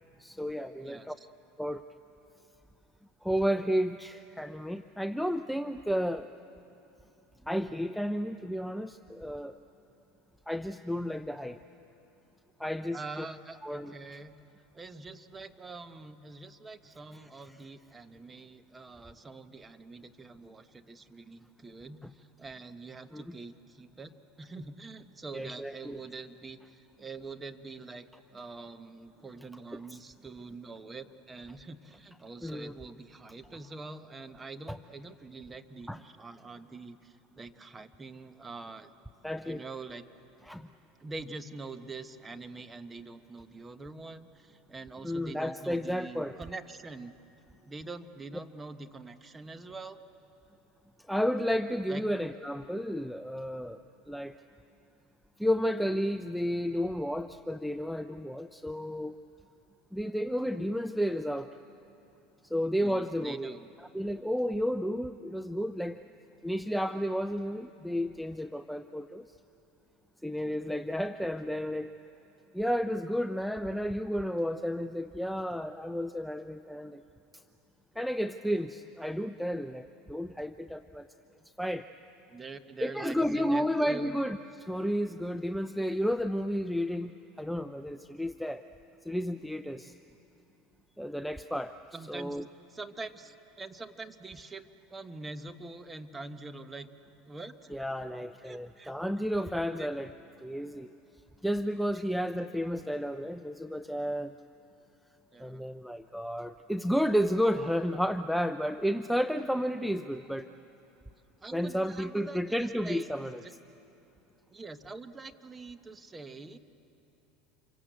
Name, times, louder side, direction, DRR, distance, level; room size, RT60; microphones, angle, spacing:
voice 1, 0.2-1.2 1.6-1.8 3.2-6.3 7.5-9.6 10.5-11.6 12.6-13.3 13.6-13.9 17.5-17.6 22.0-22.1 23.1-23.4 25.3-26.0 29.9-30.0 32.4-32.7 34.7-34.8 35.9-36.0 39.2-39.6 40.5-40.7 45.0-46.4 51.1-53.8 54.1-54.4 55.4-59.2 59.9-61.5 62.4-63.6 63.9-66.0 66.4-69.3 70.2-71.9 72.5-77.0 77.3-77.4 78.0-81.1 81.6-81.9 82.8-87.1 87.4-88.6 89.0-90.0 91.0-91.7 92.1-92.4 97.7-100.1 100.4-100.9 101.4-104.3 105.4-110.5 111.5-113.4, equal, ahead, 9 dB, 0.6 m, -32 dB
voice 2, 0.8-1.3 12.9-14.4 14.7-24.1 24.4-28.1 28.3-38.9 39.4-40.1 41.0-47.1 47.6-50.0 51.9-52.0 62.8-63.7 82.3-84.1 91.9-92.4 92.7-94.6 94.9-96.9 97.3-97.9 98.4-98.9 99.7-99.9 101.9-102.0 105.3-105.6 111.4-113.5 114.5-116.6, right 3 dB, 20° right, 10 dB, 1.3 m, -45 dB
27.5 x 24.0 x 8.2 m, 2.9 s
hypercardioid pair, 95°, 0 cm